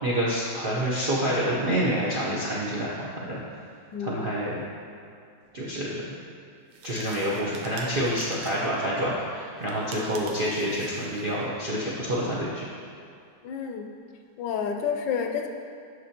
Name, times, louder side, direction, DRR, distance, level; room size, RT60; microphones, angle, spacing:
voice 1, 0.0-2.9 3.2-3.4 4.0-4.5 5.5-6.1 6.8-12.6, equal, 55° right, -7 dB, 0.6 m, -27 dB
voice 2, 3.9-4.4 9.9-10.1 13.4-13.9 14.4-15.5, left 7 dB, 75° left, 4 dB, 1.2 m, -30 dB
sound 1, 6.7-8.7 9.6-11.4, right 3 dB, 80° right, 1.5 m, -44 dB
9.3 x 6.1 x 2.8 m, 2.4 s
omnidirectional pair, 2.1 m